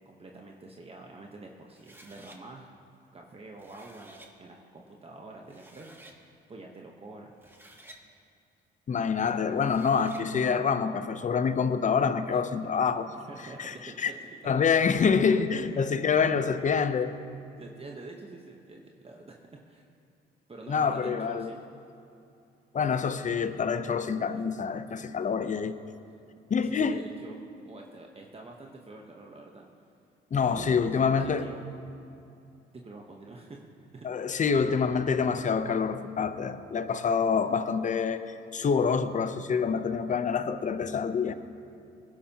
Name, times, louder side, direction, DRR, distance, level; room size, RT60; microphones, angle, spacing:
voice 1, 0.0-2.7 3.1-7.4 12.3-12.4 13.1-14.2 14.5-14.8 15.7-15.8 16.5-16.6 17.6-19.9 20.5-21.6 24.3-24.4 26.6-29.7 30.3-31.7 32.7-34.1, right 2 dB, 30° right, 0 dB, 1.0 m, -46 dB
sound 1, 1.7-2.4 3.4-4.3 5.1-5.2 5.5-6.2 7.2-8.0 9.5-10.3, right 1 dB, 10° right, 1.3 m, -52 dB
voice 2, 8.9-13.1 13.6-14.1 14.4-17.1 20.7-21.5 22.7-25.7 26.5-27.0 30.3-31.4 34.0-38.2 38.5-41.3, left 6 dB, 40° left, 11 dB, 0.7 m, -26 dB
20.0 x 11.5 x 2.9 m, 2.7 s
cardioid pair, 90°, 20 cm